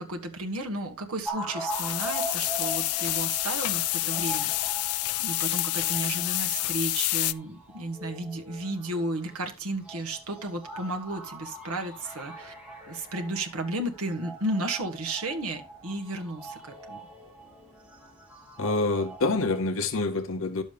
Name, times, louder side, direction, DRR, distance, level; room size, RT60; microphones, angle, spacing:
voice 1, 0.0-4.7 5.2-12.5 12.9-17.0, right 1 dB, 80° right, 1.6 m, -33 dB
sound 1, 1.2-9.4 9.8-19.6, right 1 dB, 5° right, 2.1 m, -41 dB
sound 2, 1.7-7.3, left 18 dB, 85° left, 0.4 m, -28 dB
voice 2, 18.6-20.6, left 3 dB, 60° left, 0.8 m, -26 dB
11.5 x 7.2 x 3.4 m
head